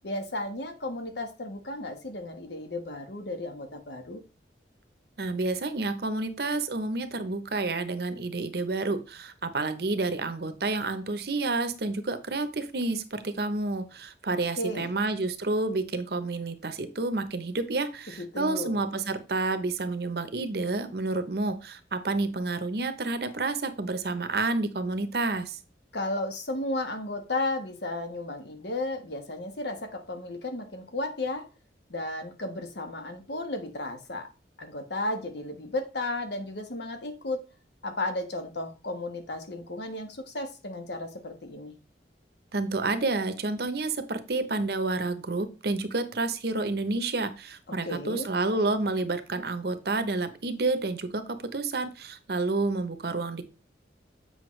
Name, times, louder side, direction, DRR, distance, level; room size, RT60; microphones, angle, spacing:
voice 1, 0.0-4.2 14.6-14.9 18.2-18.8 25.9-31.5 31.9-34.3 34.6-37.4 37.8-41.7 47.7-48.3, left 2 dB, 70° left, 1.3 m, -34 dB
voice 2, 5.2-25.6 42.5-53.4, right 3 dB, 60° right, 0.8 m, -29 dB
7.9 x 5.5 x 3.2 m
head